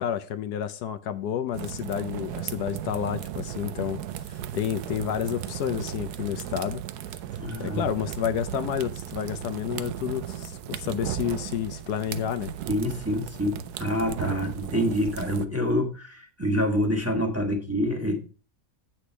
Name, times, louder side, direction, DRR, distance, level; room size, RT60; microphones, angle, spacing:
voice 1, 0.0-4.0 4.3-6.8 7.6-12.5, left 9 dB, 75° left, 10 dB, 1.2 m, -30 dB
sound 1, 1.5-15.5, right 11 dB, 75° right, 1.2 m, -36 dB
voice 2, 7.4-7.9 12.7-18.2, equal, 10° right, 2 dB, 1.3 m, -27 dB
8.5 x 6.2 x 4.4 m, 0.36 s
omnidirectional pair, 1.8 m